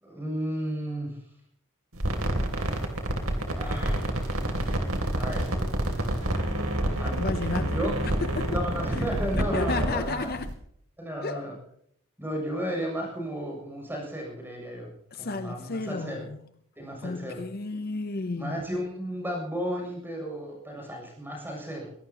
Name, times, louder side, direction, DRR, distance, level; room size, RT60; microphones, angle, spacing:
voice 1, 0.0-1.2 3.5-4.1 5.1-5.5 7.0-7.2 7.6-7.9 8.4-10.3 11.0-11.5 12.2-16.3 16.8-17.4 18.4-21.9, equal, 10° right, 7.4 m, -33 dB
sound 1, 1.9-10.5, right 1 dB, 80° right, 3.1 m, -28 dB
voice 2, 7.1-8.6 8.9-9.0 9.5-10.5 11.2-11.5 15.1-16.5 17.0-18.7, left 3 dB, 45° left, 0.7 m, -33 dB
23.0 x 17.5 x 3.0 m
head